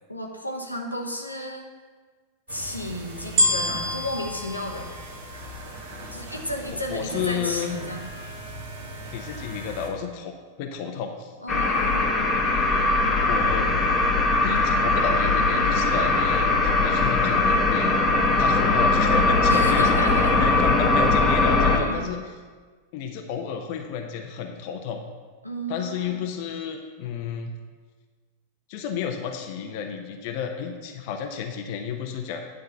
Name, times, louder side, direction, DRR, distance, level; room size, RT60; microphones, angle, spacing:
voice 1, 0.1-1.6 2.5-4.9 6.1-8.1 11.4-12.3 19.5-20.3 21.6-22.1 25.4-26.2, equal, 85° left, 1 dB, 1.0 m, -32 dB
sound 1, 2.5-9.9, right 1 dB, 55° right, 1.4 m, -39 dB
sound 2, 3.4-5.8 6.4-6.5, equal, 35° right, 1.1 m, -26 dB
voice 2, 6.9-7.8 9.1-11.3 13.3-13.7 14.4-18.0 18.4-22.2 22.9-25.0 25.7-27.5 28.7-32.4, left 7 dB, 45° left, 4 dB, 0.7 m, -32 dB
sound 3, 11.5-21.8, left 3 dB, 15° left, 1.3 m, -20 dB
9.5 x 3.8 x 6.7 m, 1.4 s
figure-of-eight pair, 90°, 0 cm